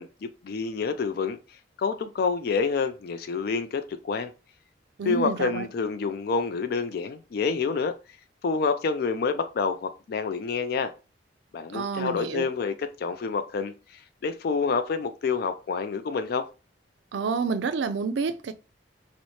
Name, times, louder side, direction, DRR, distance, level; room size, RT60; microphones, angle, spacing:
voice 1, 0.0-1.4 1.8-4.3 5.0-7.9 8.4-10.9 11.5-16.5, left 5 dB, 55° left, 0.3 m, -28 dB
voice 2, 5.0-5.7 11.7-12.5 17.1-18.5, right 5 dB, 70° right, 0.4 m, -29 dB
4.1 x 2.0 x 3.1 m
head